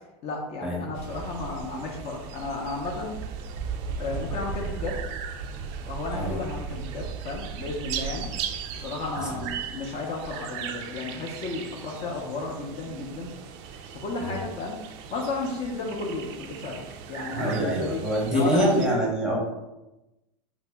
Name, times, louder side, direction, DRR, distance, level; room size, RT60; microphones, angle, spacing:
voice 1, 0.2-3.2 4.0-5.0 5.9-8.3 8.7-13.3 13.9-14.8 15.1-16.8 17.1-18.0 18.3-18.8, left 3 dB, 35° left, 0 dB, 0.6 m, -33 dB
sound 1, 0.9-18.9, right 6 dB, 55° right, 0.4 m, -37 dB
voice 2, 17.3-19.4, equal, 5° right, -3 dB, 0.7 m, -25 dB
2.9 x 2.6 x 3.3 m, 0.99 s
supercardioid pair, 125°, 17 cm